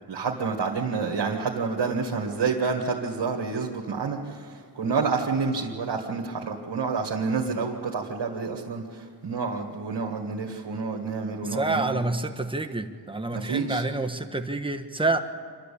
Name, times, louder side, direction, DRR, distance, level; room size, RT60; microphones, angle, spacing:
voice 1, 0.1-12.0 13.3-13.8, right 4 dB, 75° right, -1 dB, 1.9 m, -29 dB
voice 2, 11.4-15.2, right 2 dB, 10° right, 4 dB, 1.4 m, -28 dB
26.0 x 12.5 x 8.6 m, 2.1 s
cardioid pair, 60°, 42 cm